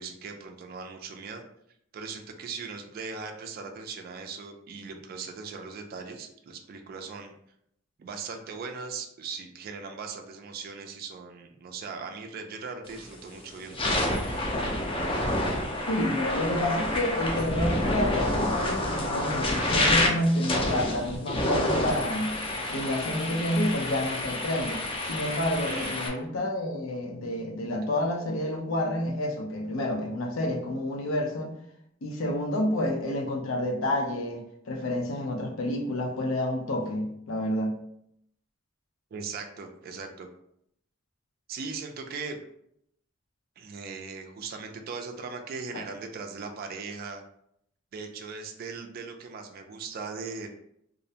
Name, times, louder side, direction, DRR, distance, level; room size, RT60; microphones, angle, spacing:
voice 1, 0.0-1.4 1.9-7.3 8.0-14.1 25.6-26.0 39.1-40.3 41.5-42.4 43.6-47.2 47.9-50.5, right 5 dB, 50° right, 4 dB, 0.3 m, -39 dB
sound 1, 12.9-13.1 13.6-26.1, left 1 dB, 25° left, 0.4 m, -28 dB
voice 2, 15.9-22.4 22.7-24.8 25.1-31.5 32.0-37.8, left 1 dB, 80° left, 2 dB, 0.5 m, -29 dB
2.4 x 2.0 x 2.7 m, 0.74 s
head